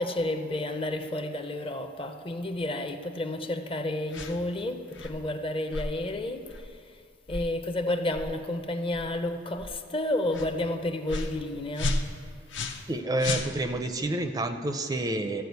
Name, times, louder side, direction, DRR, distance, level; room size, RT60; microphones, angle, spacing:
voice 1, 0.0-7.0 7.3-12.0, left 1 dB, 30° left, 0.6 m, -31 dB
sound 1, 4.1-4.4 4.9-5.2 5.7-5.9 6.5-6.7 7.3-7.5 8.1-8.3 8.9-9.1 9.6-9.7 10.3-10.5 11.1-11.4 11.7-12.9 13.2-13.9, left 2 dB, 70° left, 0.8 m, -33 dB
voice 2, 12.9-15.4, right 1 dB, 20° right, 0.4 m, -29 dB
14.0 x 4.8 x 8.1 m
head